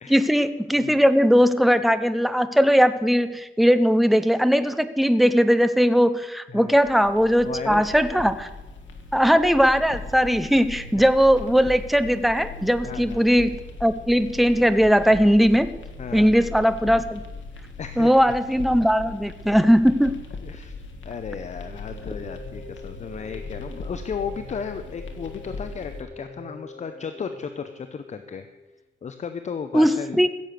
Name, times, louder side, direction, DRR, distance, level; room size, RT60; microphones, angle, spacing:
voice 1, 0.1-8.5 9.1-15.7 16.1-17.2 18.0-20.2 29.7-30.3, equal, ahead, 12 dB, 0.6 m, -19 dB
sound 1, 6.8-26.0, left 3 dB, 80° left, 1.7 m, -39 dB
voice 2, 7.4-7.8 12.8-13.2 16.0-16.3 17.8-18.1 20.4-28.5 29.0-30.3, left 6 dB, 40° left, 9 dB, 0.6 m, -35 dB
sound 2, 21.5-28.7, left 2 dB, 20° left, 3.9 m, -44 dB
15.5 x 7.6 x 6.6 m, 1.1 s
wide cardioid pair, 140°, 19 cm